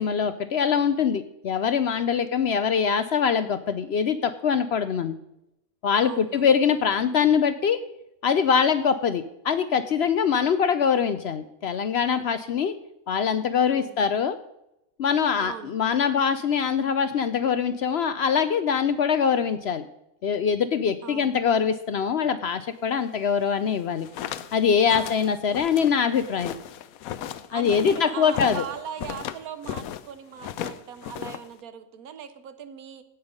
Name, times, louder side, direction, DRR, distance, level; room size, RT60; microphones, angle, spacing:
voice 1, 0.0-5.2 5.8-7.8 8.2-12.8 13.1-14.3 15.0-19.9 20.2-24.1 24.5-26.5 27.5-28.6, left 7 dB, 60° left, 12 dB, 0.7 m, -23 dB
voice 2, 6.0-6.5 13.7-14.0 15.4-15.7 16.0-16.2 21.0-21.4 24.9-25.2 27.5-33.0, right 8 dB, 85° right, 12 dB, 1.3 m, -39 dB
sound 1, 23.8-30.1 30.4-31.6, left 10 dB, 80° left, 1.1 m, -35 dB
16.5 x 5.7 x 5.2 m, 0.84 s
omnidirectional pair, 1.5 m